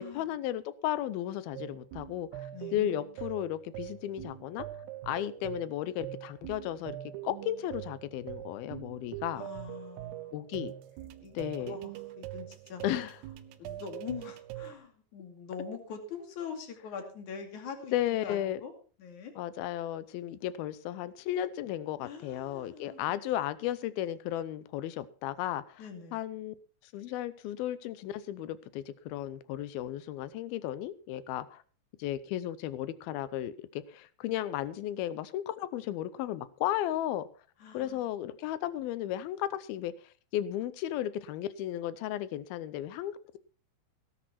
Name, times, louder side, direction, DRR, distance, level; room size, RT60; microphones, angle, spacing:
voice 1, 0.0-4.7 5.0-7.0 7.2-9.5 10.3-10.7 11.3-11.8 12.8-13.2 17.9-18.6 19.4-26.5 26.9-31.6 32.0-37.3 37.7-43.4, left 12 dB, 75° left, 15 dB, 2.3 m, -34 dB
sound 1, 1.6-14.8, right 14 dB, 75° right, 2.9 m, -43 dB
voice 2, 9.3-10.3 11.2-11.4 11.7-11.9 12.2-12.8 13.6-18.7 19.0-19.3 22.0-23.0 25.8-26.2 37.6-38.1, left 6 dB, 50° left, 5 dB, 3.5 m, -43 dB
17.5 x 10.5 x 4.3 m, 0.38 s
omnidirectional pair, 5.1 m